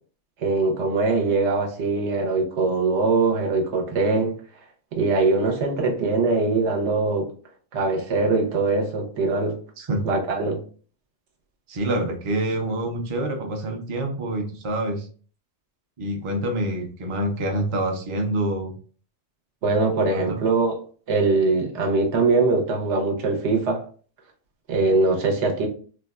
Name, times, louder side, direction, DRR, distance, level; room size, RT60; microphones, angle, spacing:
voice 1, 0.4-4.4 4.9-7.3 7.7-9.6 10.0-10.6 19.6-20.7 21.1-23.8 24.7-25.7, right 3 dB, 85° right, 1 dB, 1.0 m, -22 dB
voice 2, 11.7-15.1 16.0-18.7 20.1-20.5, right 1 dB, 40° right, 3 dB, 0.4 m, -26 dB
3.4 x 2.1 x 2.3 m, 0.41 s
omnidirectional pair, 1.2 m